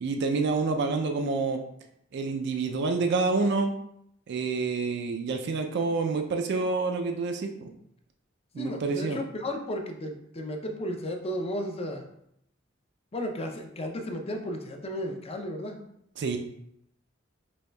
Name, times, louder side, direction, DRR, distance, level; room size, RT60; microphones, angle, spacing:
voice 1, 0.0-1.6 2.1-3.7 4.3-7.5 8.5-9.2 16.2-16.4, right 4 dB, 55° right, 4 dB, 0.4 m, -27 dB
voice 2, 8.6-12.0 13.1-15.8, equal, 30° left, 4 dB, 0.5 m, -34 dB
5.1 x 3.0 x 2.2 m, 0.74 s
head